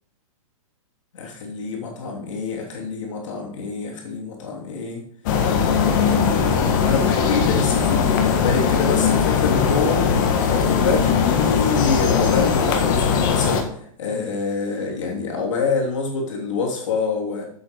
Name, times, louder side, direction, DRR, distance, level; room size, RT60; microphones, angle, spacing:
voice 1, 1.1-5.0 5.6-17.5, left 4 dB, 60° left, -1 dB, 2.9 m, -26 dB
sound 1, 5.3-13.6, left 6 dB, 35° left, 1.3 m, -19 dB
7.7 x 7.7 x 5.3 m, 0.64 s
hypercardioid pair, 175°, 18 cm